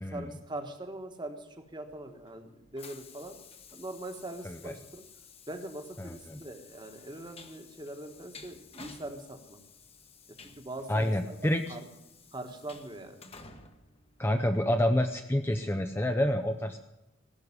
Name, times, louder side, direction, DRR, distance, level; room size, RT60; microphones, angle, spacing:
voice 1, 0.1-3.4 3.7-5.0 5.5-9.6 10.3-11.4 11.7-11.9 12.3-13.3, right 1 dB, 20° right, 6 dB, 1.4 m, -42 dB
Train, 1.6-14.8, left 5 dB, 30° left, 1.1 m, -54 dB
voice 2, 6.0-6.4 10.9-11.7 14.2-16.8, left 1 dB, 10° left, 6 dB, 0.6 m, -28 dB
17.0 x 6.5 x 9.8 m, 0.96 s
head